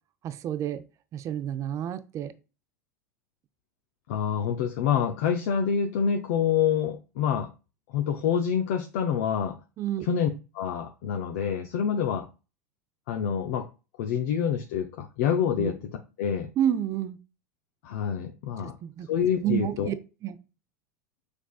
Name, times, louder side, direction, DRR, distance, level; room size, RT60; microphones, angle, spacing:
voice 1, 0.2-0.8 1.1-2.3 9.8-10.0 15.6-15.7 16.6-17.2 18.8-19.1 19.4-19.9 20.2-20.4, right 10 dB, 35° right, 11 dB, 0.5 m, -29 dB
voice 2, 4.1-7.5 7.9-9.6 10.0-10.3 10.5-12.3 13.1-13.7 14.0-15.9 16.2-16.5 17.8-18.8 19.1-19.9, left 8 dB, 60° left, 5 dB, 0.6 m, -27 dB
6.2 x 3.4 x 2.4 m, 0.31 s
figure-of-eight pair, 85°, 9 cm